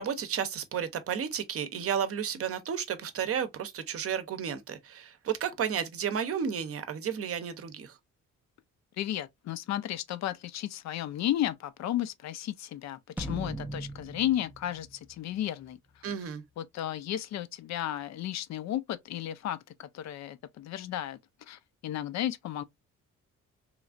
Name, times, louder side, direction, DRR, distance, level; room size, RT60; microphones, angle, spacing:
voice 1, 0.0-8.0 16.0-16.4, right 8 dB, 50° right, 0.7 m, -32 dB
voice 2, 9.0-16.0 16.6-21.2 21.5-22.6, left 12 dB, 65° left, 0.5 m, -34 dB
sound 1, 13.2-15.7, right 1 dB, 5° right, 0.3 m, -40 dB
3.1 x 2.4 x 2.4 m
cardioid pair, 90°, 30 cm